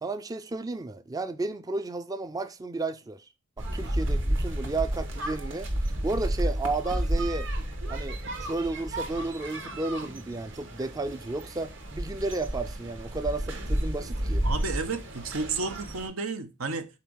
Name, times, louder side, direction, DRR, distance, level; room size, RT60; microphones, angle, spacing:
voice 1, 0.0-3.3 3.6-5.7 6.0-7.5 7.9-14.4, right 3 dB, 20° right, 0.4 m, -33 dB
sound 1, 3.6-16.1, right 1 dB, 60° right, 1.5 m, -31 dB
voice 2, 14.4-16.9, right 4 dB, 90° right, 1.0 m, -32 dB
5.7 x 4.3 x 6.2 m
head